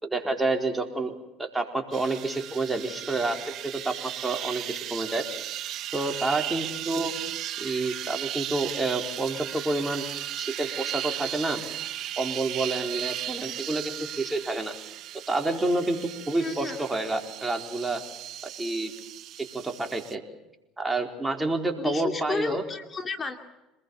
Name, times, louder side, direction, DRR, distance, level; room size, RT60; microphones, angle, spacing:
voice 1, 0.0-1.1 1.4-3.5 3.8-5.3 5.9-7.1 7.6-10.0 10.4-11.6 12.2-14.7 15.3-16.0 16.3-18.0 18.6-18.9 19.4-20.2 20.8-22.6, right 2 dB, 15° right, 4 dB, 4.3 m, -29 dB
sound 1, 1.9-20.1, right 12 dB, 55° right, 1.0 m, -36 dB
voice 2, 16.4-16.8 21.7-23.4, left 4 dB, 30° left, 6 dB, 2.6 m, -32 dB
27.0 x 20.5 x 7.2 m, 0.99 s
hypercardioid pair, 75°, 0 cm